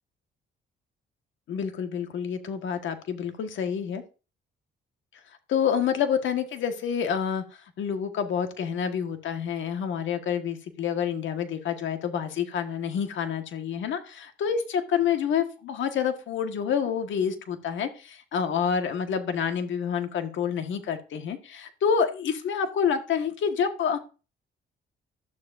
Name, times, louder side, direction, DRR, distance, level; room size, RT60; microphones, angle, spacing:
voice 1, 1.5-4.0 5.5-7.4 7.8-14.1 14.4-24.0, left 7 dB, 75° left, 7 dB, 1.6 m, -28 dB
12.5 x 12.0 x 2.6 m, 0.34 s
cardioid pair, 90°, 20 cm